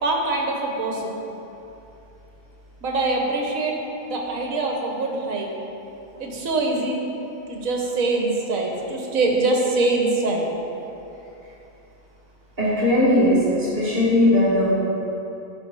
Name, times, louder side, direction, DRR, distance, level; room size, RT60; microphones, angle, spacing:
voice 1, 0.0-1.1 2.8-3.8 4.1-5.5 6.2-7.0 7.5-10.5, right 2 dB, 65° right, 0 dB, 1.5 m, -23 dB
voice 2, 12.6-14.7, left 1 dB, 40° right, -8 dB, 2.2 m, -18 dB
10.5 x 5.2 x 4.7 m, 2.9 s
omnidirectional pair, 1.6 m